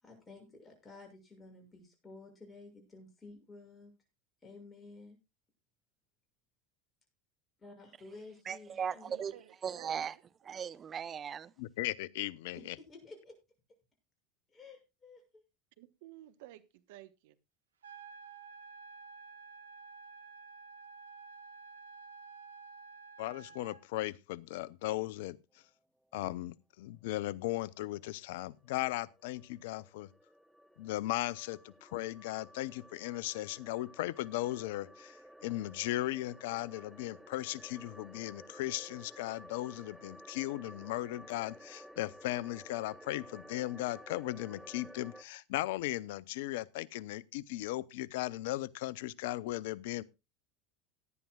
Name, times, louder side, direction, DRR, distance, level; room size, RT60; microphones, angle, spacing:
voice 1, 0.0-3.9 4.4-5.2 7.6-9.4 12.5-13.3 14.5-15.4, left 3 dB, 25° left, 6.7 m, -53 dB
voice 2, 8.5-9.3 9.6-10.1 10.4-11.5, right 7 dB, 35° right, 0.7 m, -37 dB
voice 3, 9.0-9.9 15.8-17.4, right 15 dB, 70° right, 1.1 m, -53 dB
voice 4, 11.6-12.8 23.2-25.4 26.1-30.1 30.8-50.0, left 16 dB, 70° left, 0.6 m, -37 dB
sound 1, 17.8-23.8, right 5 dB, 90° right, 1.3 m, -51 dB
sound 2, 28.0-45.2, equal, ahead, 1.0 m, -54 dB
18.0 x 10.5 x 2.3 m
hypercardioid pair, 85°, 0 cm